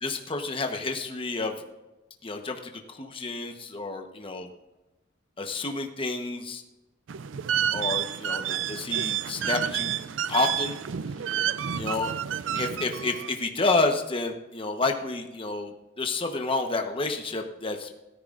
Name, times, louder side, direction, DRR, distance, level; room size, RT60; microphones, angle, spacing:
voice 1, 0.0-1.5 2.2-4.5 5.4-6.6 7.7-10.8 11.8-12.1 12.5-17.9, left 3 dB, 30° left, 4 dB, 1.0 m, -30 dB
sound 1, 7.1-13.3, right 9 dB, 80° right, 0.4 m, -30 dB
17.0 x 13.5 x 2.5 m, 1.0 s
head